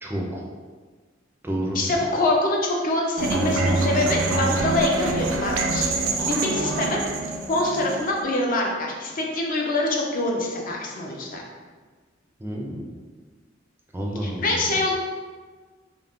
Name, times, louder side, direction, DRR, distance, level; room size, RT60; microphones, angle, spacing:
voice 1, 0.0-0.4 1.4-1.8 12.4-12.9 13.9-14.7, right 1 dB, 10° right, -2 dB, 0.4 m, -29 dB
voice 2, 1.7-7.0 7.5-11.4 14.2-14.9, left 2 dB, 45° left, 0 dB, 0.5 m, -25 dB
sound 1, 3.2-8.2, right 3 dB, 85° right, 0.3 m, -25 dB
2.4 x 2.0 x 3.5 m, 1.4 s
head